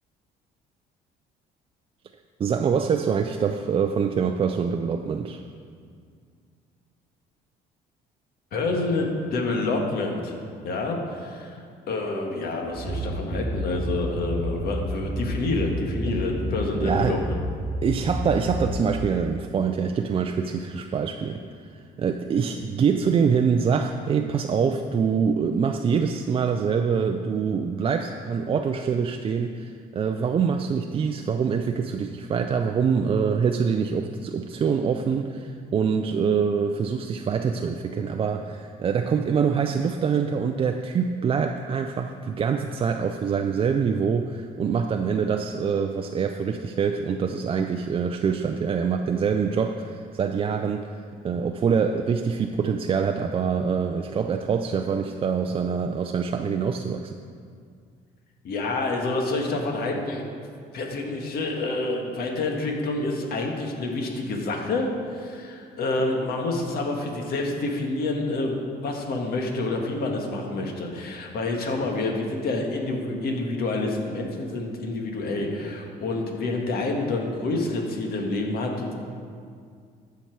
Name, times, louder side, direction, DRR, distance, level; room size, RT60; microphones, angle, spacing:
voice 1, 2.4-5.4 16.8-17.2 17.8-21.4 22.0-50.9 51.2-57.1, right 6 dB, 35° right, 5 dB, 0.4 m, -25 dB
voice 2, 8.5-10.3 10.6-11.6 11.9-17.4 58.4-60.2 60.7-68.6 68.8-78.9, left 2 dB, 65° left, 1 dB, 1.6 m, -28 dB
sound 1, 12.7-19.2, equal, 10° right, 2.8 m, -30 dB
14.5 x 5.8 x 4.6 m, 2.2 s
cardioid pair, 110°, 17 cm